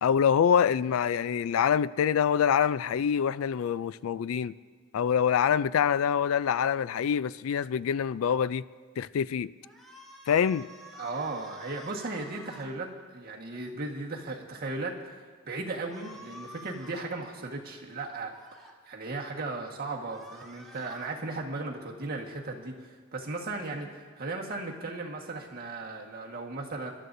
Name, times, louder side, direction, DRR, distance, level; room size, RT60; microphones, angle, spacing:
voice 1, 0.0-4.5 4.9-8.6 9.0-9.5 10.3-10.7, left 8 dB, 75° left, 0.3 m, -25 dB
sound 1, 9.6-12.7 15.8-17.0 18.1-18.7 19.9-21.1, equal, ahead, 2.0 m, -49 dB
voice 2, 11.0-12.9 13.1-18.3 18.9-23.9 24.2-26.9, right 3 dB, 45° right, 1.5 m, -36 dB
26.5 x 12.5 x 2.7 m
head